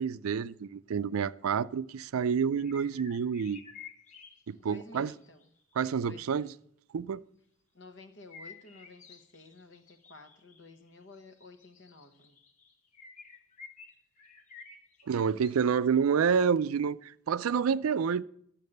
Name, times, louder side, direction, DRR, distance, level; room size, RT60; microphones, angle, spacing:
voice 1, 0.0-3.6 4.5-5.1 5.8-6.5 6.9-7.2 15.1-18.2, right 6 dB, 90° right, 0.4 m, -28 dB
sound 1, 2.5-6.0 8.3-16.0 16.5-16.6, left 5 dB, 35° left, 1.0 m, -52 dB
voice 2, 4.6-5.5 6.0-6.5 7.7-12.4, left 3 dB, 55° left, 1.1 m, -52 dB
12.5 x 7.4 x 6.6 m
head